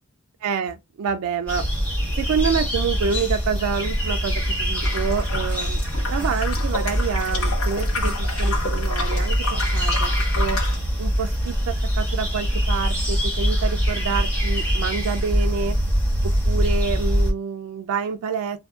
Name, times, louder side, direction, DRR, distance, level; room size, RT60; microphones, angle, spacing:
voice 1, 0.4-1.6 2.2-5.8 6.1-10.6 11.0-15.8 16.2-18.6, right 6 dB, 90° right, 0.3 m, -27 dB
sound 1, 1.5-17.3, equal, 5° left, 1.3 m, -23 dB
sound 2, 4.8-10.8, left 3 dB, 75° left, 0.8 m, -31 dB
2.7 x 2.5 x 2.3 m
head